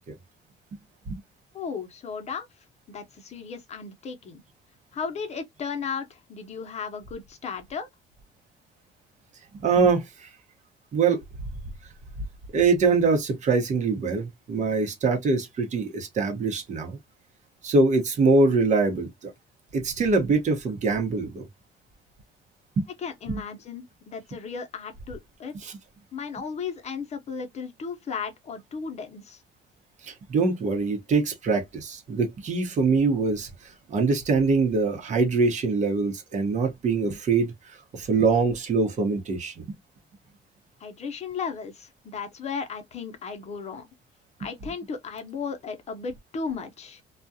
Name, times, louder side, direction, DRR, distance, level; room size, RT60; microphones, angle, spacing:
voice 1, 1.5-2.5 2.9-4.4 4.9-7.9 23.0-25.7 26.1-29.4 40.8-43.9 44.4-47.0, left 5 dB, 40° left, 0.8 m, -35 dB
voice 2, 9.5-10.3 10.9-11.2 12.5-17.0 17.6-19.3 19.7-21.4 22.8-22.9 23.3-23.4 25.5-25.8 30.0-39.6, right 4 dB, 45° right, 1.0 m, -24 dB
2.4 x 2.3 x 2.6 m
cardioid pair, 110°, 17 cm